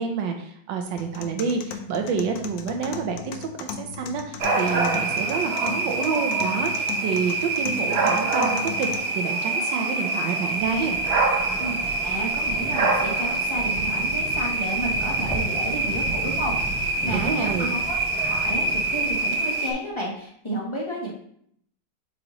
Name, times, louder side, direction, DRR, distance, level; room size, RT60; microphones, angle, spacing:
voice 1, 0.0-11.0 17.1-17.7, right 5 dB, 85° right, 3 dB, 1.4 m, -28 dB
sound 1, 1.0-9.0, left 8 dB, 70° left, 1.0 m, -37 dB
sound 2, 4.4-19.7, right 3 dB, 55° right, 0.7 m, -25 dB
sound 3, 10.4-19.6, right 1 dB, ahead, 1.2 m, -37 dB
voice 2, 11.6-21.1, right 1 dB, 25° left, -3 dB, 0.7 m, -32 dB
8.0 x 4.1 x 2.9 m, 0.68 s
omnidirectional pair, 2.0 m